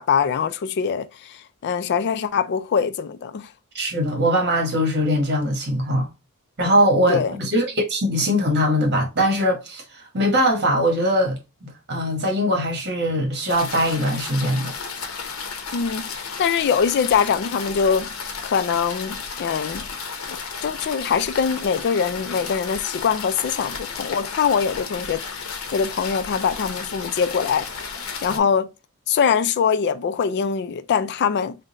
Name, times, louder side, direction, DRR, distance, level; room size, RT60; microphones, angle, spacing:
voice 1, 0.0-1.4 1.6-3.5 7.1-7.3 15.7-18.1 18.4-19.8 20.3-25.2 25.7-27.9 28.2-28.7 29.1-31.6, left 6 dB, 50° left, 0.3 m, -23 dB
voice 2, 3.7-6.1 6.6-14.7, equal, 50° right, 1.2 m, -21 dB
sound 1, 13.5-28.4, left 5 dB, 70° left, 0.8 m, -33 dB
3.7 x 2.2 x 3.9 m
head